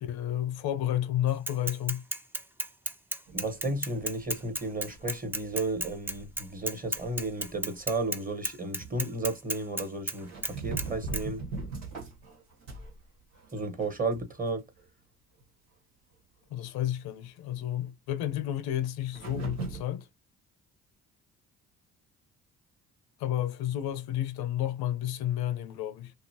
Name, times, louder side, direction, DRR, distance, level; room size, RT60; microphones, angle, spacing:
voice 1, 0.0-2.0 16.5-20.1 23.2-26.1, left 12 dB, 70° left, 0.7 m, -31 dB
Bicycle / Mechanisms, 1.5-8.2 8.4-10.2 10.4-10.9 11.1-11.2, right 1 dB, 5° right, 0.5 m, -33 dB
voice 2, 3.3-11.4 13.5-14.6, right 2 dB, 20° right, 1.3 m, -33 dB
sound 1, 3.3-7.8 8.3-8.5 8.8-9.3 10.2-13.0 13.3-14.5 14.8-14.9 15.4-15.5 19.1-19.8, right 4 dB, 75° right, 1.5 m, -41 dB
2.8 x 2.3 x 2.8 m
hypercardioid pair, 55°, 39 cm